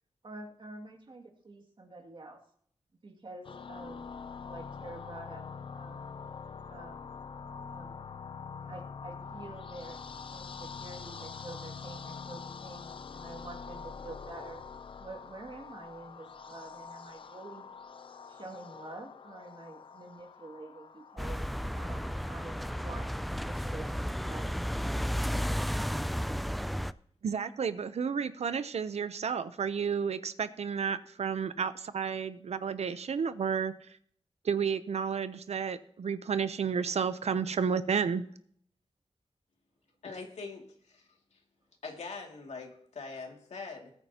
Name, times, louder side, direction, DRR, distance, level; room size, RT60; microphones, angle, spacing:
voice 1, 0.2-2.4 3.0-4.1 4.4-5.4 5.7-6.1 6.7-7.2 7.7-8.0 8.6-10.0 10.3-14.6 15.0-17.7 18.2-21.4 21.7-24.6, right 2 dB, 50° right, 2 dB, 2.3 m, -47 dB
sound 1, 3.4-23.2, left 5 dB, 50° left, 0.5 m, -45 dB
sound 2, 21.2-26.9, equal, ahead, 0.3 m, -33 dB
voice 2, 27.2-33.7 34.4-38.3, right 6 dB, 80° right, 13 dB, 0.7 m, -31 dB
voice 3, 40.0-41.4 41.8-43.9, left 4 dB, 90° left, 1 dB, 2.4 m, -43 dB
20.5 x 9.0 x 2.9 m, 0.63 s
wide cardioid pair, 120°, 11 cm